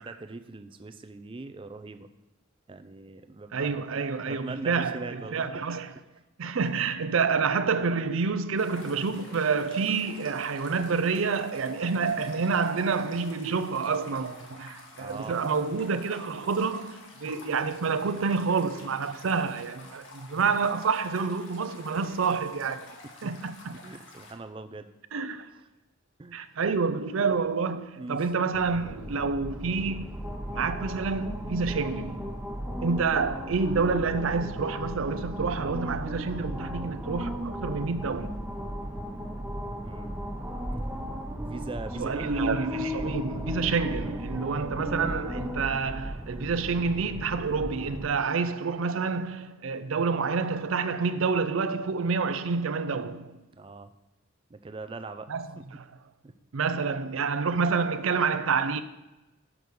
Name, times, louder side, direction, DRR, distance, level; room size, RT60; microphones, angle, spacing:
voice 1, 0.0-2.1 2.7-5.6 14.9-15.4 23.7-24.9 26.2-26.7 28.0-28.3 39.8-40.2 41.4-42.3 53.5-53.9 54.5-55.3 55.6-55.7 56.2-56.3, right 3 dB, 25° right, 0.4 m, -41 dB
voice 2, 3.5-5.9 6.4-23.0 23.2-23.8 25.1-25.5 26.3-32.3 32.8-38.4 42.0-53.4 55.3-55.8 56.5-58.8, right 5 dB, 80° right, 0.5 m, -28 dB
sound 1, 8.6-24.3, left 2 dB, 70° left, 1.5 m, -49 dB
sound 2, 28.5-48.0, equal, 10° right, 0.8 m, -35 dB
6.0 x 5.3 x 6.4 m
head